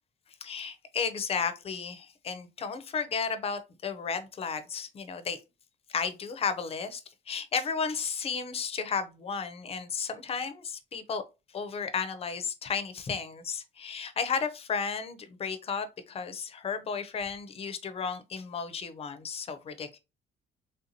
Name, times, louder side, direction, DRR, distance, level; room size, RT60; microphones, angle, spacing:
voice 1, 0.4-5.4 5.9-7.0 7.3-11.2 11.5-20.0, left 6 dB, 30° left, 0.4 m, -33 dB
3.3 x 2.5 x 2.7 m
cardioid pair, 165°, 21 cm